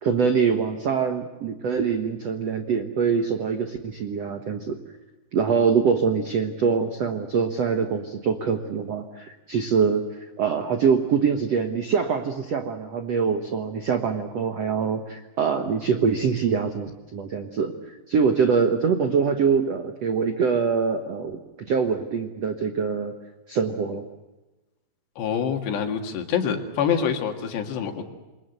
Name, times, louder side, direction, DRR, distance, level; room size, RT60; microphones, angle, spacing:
voice 1, 0.0-4.8 5.3-10.0 10.4-17.7 18.1-21.4 21.7-23.1 23.5-24.0, right 6 dB, 80° right, 6 dB, 1.4 m, -24 dB
voice 2, 25.2-28.0, left 7 dB, 70° left, 4 dB, 4.0 m, -26 dB
28.0 x 23.0 x 8.0 m, 1.1 s
omnidirectional pair, 5.1 m